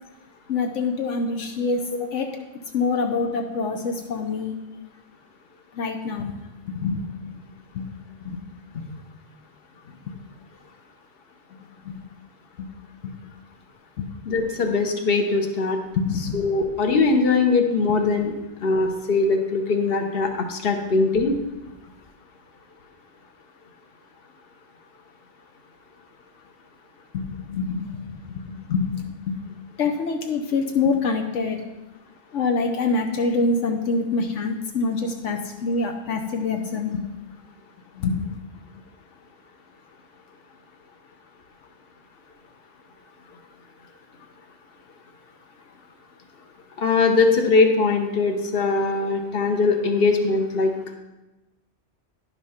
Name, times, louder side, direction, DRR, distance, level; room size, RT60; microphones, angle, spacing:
voice 1, 0.5-1.8 2.1-2.3 2.7-4.5 5.7-6.3 6.7-7.0 7.7-7.9 8.2-8.4 11.8-12.0 12.6-12.7 13.0-13.1 14.0-14.1 16.0-16.4 27.1-29.4 29.8-31.6 32.3-37.0 37.9-38.3, left 4 dB, 80° left, 4 dB, 1.2 m, -25 dB
voice 2, 14.3-15.8 16.3-18.3 18.6-21.3 46.8-50.7, left 4 dB, 55° left, 4 dB, 1.3 m, -21 dB
10.5 x 5.8 x 5.7 m, 1.0 s
omnidirectional pair, 1.2 m